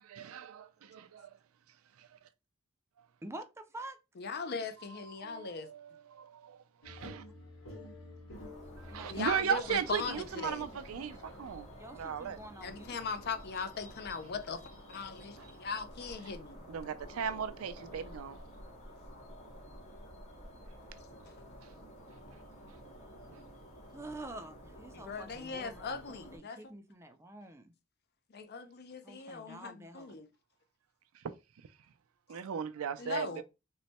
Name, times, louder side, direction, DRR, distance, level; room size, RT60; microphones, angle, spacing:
voice 1, 0.1-1.4 2.0-2.1 4.9-7.2 8.8-11.7 11.9-12.4 15.4-15.5 16.3-16.4 16.7-18.4 23.3-23.4 32.3-33.4, right 7 dB, 90° right, 0.4 m, -37 dB
voice 2, 3.2-4.0 8.9-9.3 9.6-9.7 10.0-11.2 11.8-13.0 23.9-27.7 29.0-30.2, right 1 dB, 15° right, 0.4 m, -48 dB
voice 3, 4.2-5.7 9.1-10.6 12.6-14.6 14.9-16.7 24.9-26.6 28.3-30.3 33.0-33.4, left 5 dB, 50° left, 0.5 m, -39 dB
sound 1, 6.8-17.8, left 1 dB, 85° left, 1.1 m, -53 dB
sound 2, 8.3-26.4, equal, 35° left, 1.1 m, -51 dB
3.1 x 2.1 x 4.1 m
head